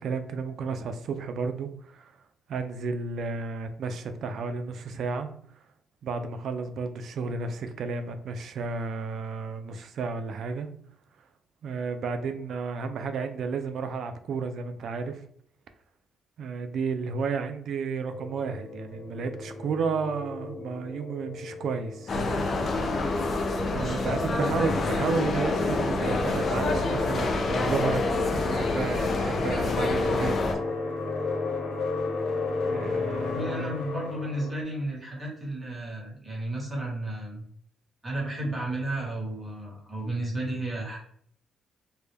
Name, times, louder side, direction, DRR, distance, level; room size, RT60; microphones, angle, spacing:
voice 1, 0.0-2.1 2.5-5.3 6.0-10.7 11.6-15.2 16.4-22.5 23.7-28.0 28.3-30.3 32.7-33.7, right 5 dB, 65° right, 8 dB, 0.3 m, -32 dB
sound 1, 18.1-34.6, left 3 dB, 65° left, 0.9 m, -33 dB
sound 2, 22.1-30.6, left 3 dB, 50° left, 0.4 m, -27 dB
voice 2, 24.3-25.0 33.1-37.4 38.0-41.0, right 1 dB, 20° right, -3 dB, 1.1 m, -33 dB
2.1 x 2.1 x 3.1 m, 0.64 s
cardioid pair, 90°, 0 cm